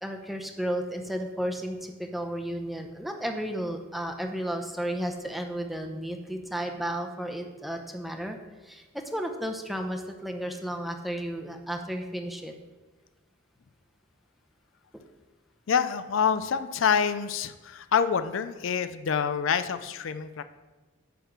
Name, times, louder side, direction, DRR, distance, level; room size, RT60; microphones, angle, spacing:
voice 1, 0.0-8.4 8.6-12.5 14.9-15.0, equal, ahead, 3 dB, 0.7 m, -33 dB
voice 2, 15.7-20.4, left 7 dB, 70° left, 11 dB, 0.4 m, -26 dB
10.0 x 3.6 x 7.2 m, 1.2 s
head